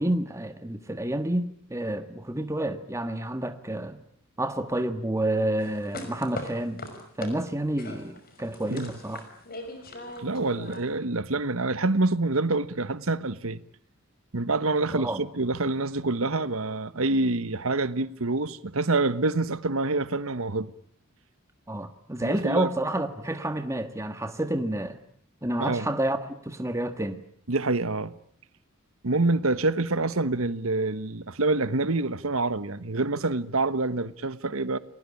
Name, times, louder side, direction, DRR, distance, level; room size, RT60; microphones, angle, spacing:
voice 1, 0.0-1.4 1.7-4.0 4.4-6.8 7.2-9.2 14.9-15.2 21.7-25.0 25.4-27.2, right 1 dB, 15° right, 1.5 m, -29 dB
sound 1, 5.6-7.3 7.8-10.8, left 2 dB, 45° left, 5.8 m, -40 dB
voice 2, 10.2-13.6 14.3-20.7 22.2-22.7 25.6-25.9 27.5-28.1 29.0-34.8, right 2 dB, 75° right, 1.2 m, -26 dB
30.0 x 21.0 x 8.5 m
head